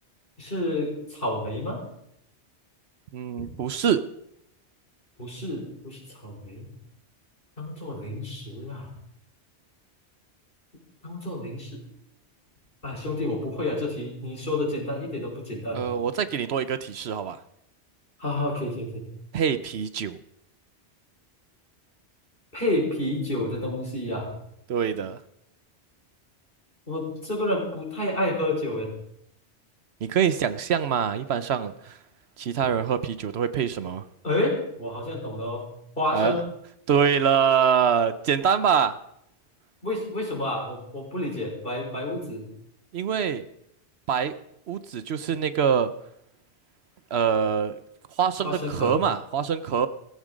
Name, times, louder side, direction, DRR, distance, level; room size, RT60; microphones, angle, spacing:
voice 1, 0.4-1.8 3.4-3.5 5.2-6.7 7.6-8.9 11.0-11.8 12.8-15.9 18.2-19.1 22.5-24.3 26.9-28.9 34.2-36.4 39.8-42.5 48.4-48.9, left 1 dB, 50° left, -1 dB, 5.1 m, -29 dB
voice 2, 3.1-4.0 15.7-17.4 19.3-20.2 24.7-25.2 30.0-32.0 32.4-34.0 36.1-36.4 36.9-39.0 42.9-43.4 44.1-44.3 44.7-45.9 47.1-47.8 48.2-49.9, right 7 dB, 70° right, 13 dB, 1.0 m, -24 dB
17.5 x 15.0 x 5.1 m, 0.77 s
omnidirectional pair, 1.2 m